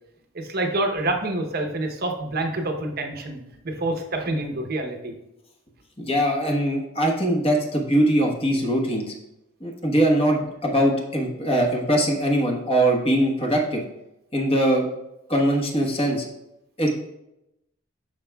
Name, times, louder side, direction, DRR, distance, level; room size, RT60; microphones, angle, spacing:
voice 1, 0.3-3.4 3.6-5.1, right 2 dB, 50° right, 4 dB, 0.9 m, -27 dB
voice 2, 6.0-9.1 9.6-13.8 14.3-14.9 15.3-16.2 16.8-16.9, right 1 dB, 30° left, 0 dB, 1.2 m, -21 dB
12.5 x 4.8 x 2.3 m, 0.88 s
head